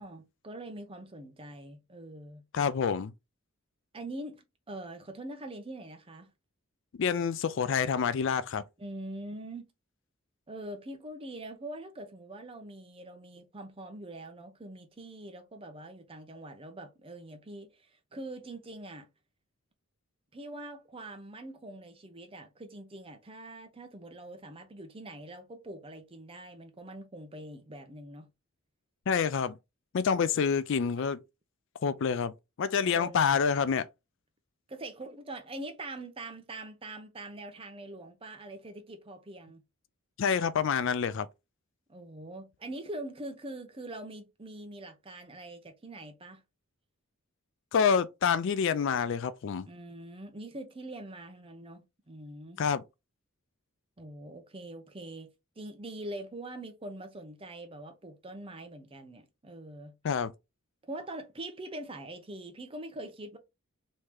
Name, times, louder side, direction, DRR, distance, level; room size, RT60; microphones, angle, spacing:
voice 1, 0.0-2.4 3.9-6.3 8.8-9.7 10.5-19.1 20.3-28.3 32.9-33.3 34.7-39.6 41.9-46.4 49.7-52.6 54.0-59.9 60.8-63.4, right 1 dB, 25° right, 0.7 m, -43 dB
voice 2, 2.5-3.1 7.0-8.6 29.1-29.5 29.9-31.2 31.8-32.3 32.6-33.9 40.2-41.3 47.7-49.7 52.6-52.8 60.0-60.3, left 6 dB, 60° left, 0.4 m, -27 dB
3.2 x 2.8 x 3.5 m
head